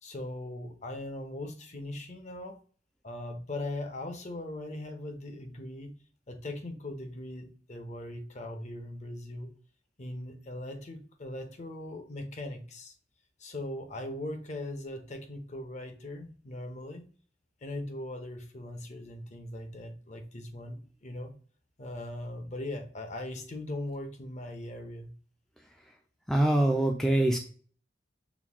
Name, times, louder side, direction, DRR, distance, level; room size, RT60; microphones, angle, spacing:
voice 1, 0.0-2.6 3.0-5.9 6.3-9.5 10.0-12.9 13.4-17.0 17.6-21.3 21.8-25.1, left 1 dB, 40° left, 5 dB, 0.8 m, -39 dB
voice 2, 26.3-27.4, right 1 dB, ahead, 2 dB, 0.4 m, -24 dB
6.0 x 2.2 x 3.5 m, 0.42 s
head